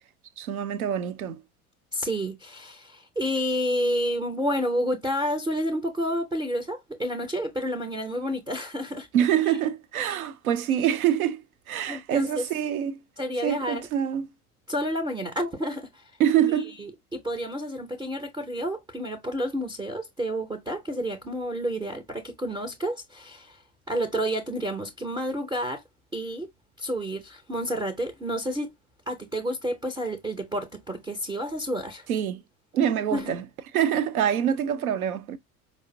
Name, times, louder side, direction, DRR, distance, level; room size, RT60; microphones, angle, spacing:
voice 1, 0.4-1.4 9.1-11.4 11.7-13.0 13.4-14.3 16.2-16.7 32.1-32.4 32.7-33.4 33.7-35.4, right 9 dB, 75° right, 0.6 m, -25 dB
voice 2, 1.9-9.1 11.9-12.4 13.2-13.9 14.7-16.0 16.8-23.6 23.9-25.8 26.1-26.5 26.8-28.7 29.1-32.1 33.1-33.3, equal, 10° right, 0.5 m, -30 dB
4.8 x 2.1 x 2.6 m
figure-of-eight pair, 65°, 44 cm